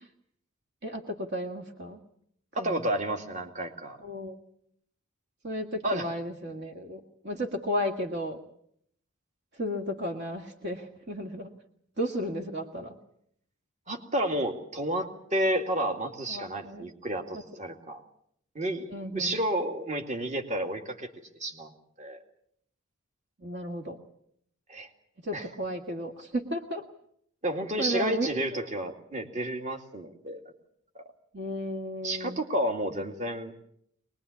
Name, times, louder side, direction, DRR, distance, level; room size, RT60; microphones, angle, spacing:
voice 1, 0.8-2.0 2.6-2.9 4.0-4.4 5.4-8.4 9.5-11.6 12.0-13.0 16.3-16.9 17.3-17.4 18.9-19.4 23.4-24.0 25.2-26.8 27.8-28.7 31.3-32.4, equal, 50° right, 4 dB, 1.9 m, -34 dB
voice 2, 2.5-4.0 5.8-6.1 13.9-18.0 18.5-21.1 21.4-21.7 22.0-22.2 24.7-24.9 25.3-25.5 27.4-30.4 32.0-33.5, right 1 dB, 35° right, 4 dB, 2.3 m, -31 dB
23.0 x 21.0 x 8.4 m, 0.69 s
head